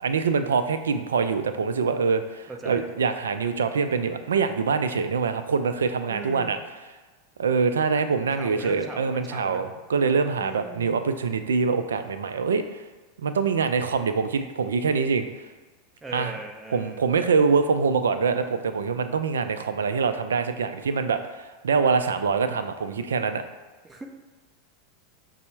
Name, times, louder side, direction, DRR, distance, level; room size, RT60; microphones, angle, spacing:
voice 1, 0.0-6.6 7.4-12.8 13.2-15.3 16.1-16.4 16.7-23.4, right 5 dB, 90° right, 9 dB, 0.3 m, -24 dB
voice 2, 2.5-2.9 6.1-6.6 8.4-9.7 10.4-10.9 16.0-17.1 23.8-24.1, right 2 dB, 15° right, 3 dB, 0.6 m, -39 dB
5.3 x 2.0 x 4.4 m, 1.3 s
hypercardioid pair, 100°, 0 cm